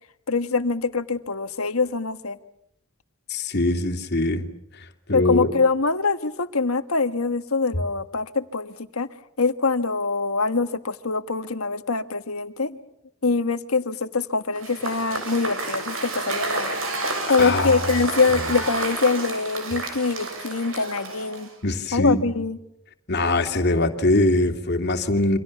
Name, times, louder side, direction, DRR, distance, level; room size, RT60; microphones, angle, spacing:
voice 1, 0.3-2.4 5.1-9.1 9.4-12.8 13.2-16.8 17.0-21.5 21.9-22.6, left 4 dB, 75° left, 10 dB, 1.5 m, -24 dB
voice 2, 3.3-4.4 4.7-5.5 17.4-18.0 18.3-18.5 21.6-22.4 23.1-25.4, left 2 dB, 50° left, 6 dB, 2.6 m, -22 dB
Cheering / Applause / Crowd, 14.6-21.6, right 3 dB, 65° right, 7.2 m, -30 dB
28.5 x 25.5 x 7.2 m, 0.76 s
head